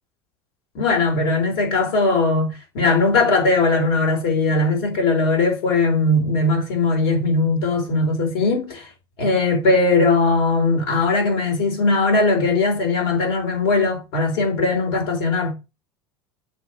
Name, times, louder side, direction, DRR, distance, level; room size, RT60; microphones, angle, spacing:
voice 1, 0.7-8.9 9.2-15.5, left 3 dB, 70° left, 3.4 m, -19 dB
6.9 x 3.0 x 4.8 m
hypercardioid pair, 80°, 14 cm